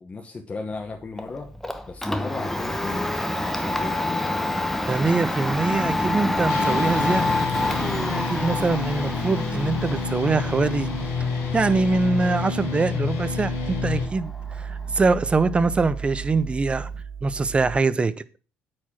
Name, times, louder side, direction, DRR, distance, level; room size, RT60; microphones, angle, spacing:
voice 1, 0.0-1.5 1.9-4.3, left 3 dB, 30° left, 1.1 m, -35 dB
sound 1, 0.7-17.8, right 7 dB, 70° right, 1.4 m, -40 dB
Domestic sounds home sounds, 1.2-17.0, left 1 dB, 5° left, 0.9 m, -28 dB
voice 2, 4.9-7.3 8.1-10.9 11.5-16.9 17.2-18.2, right 3 dB, 25° right, 0.6 m, -23 dB
sound 2, 6.5-14.1, left 5 dB, 85° left, 3.3 m, -29 dB
8.6 x 4.8 x 5.8 m
cardioid pair, 90°, 4 cm